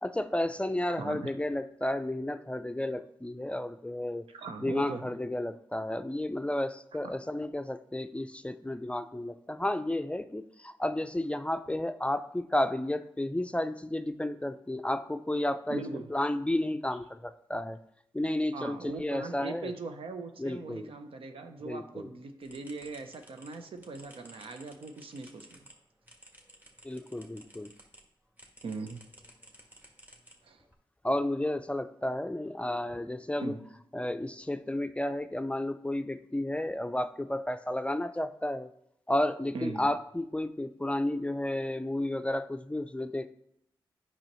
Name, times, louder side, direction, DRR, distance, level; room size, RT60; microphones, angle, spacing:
voice 1, 0.0-4.2 4.6-15.8 16.1-17.8 18.1-19.7 20.4-20.9 21.6-22.1 26.8-27.7 31.0-33.5 33.9-38.7 39.1-43.3, left 1 dB, 15° left, 10 dB, 0.4 m, -32 dB
voice 2, 1.0-1.3 4.3-5.2 15.7-16.1 18.5-25.6 28.6-29.0 30.4-30.6 33.4-33.6 39.5-39.9, right 3 dB, 80° right, 6 dB, 0.7 m, -40 dB
sound 1, 22.4-28.0 28.4-30.7, right 1 dB, 20° right, 1.5 m, -56 dB
8.8 x 5.5 x 3.1 m, 0.75 s
cardioid pair, 45°, 9 cm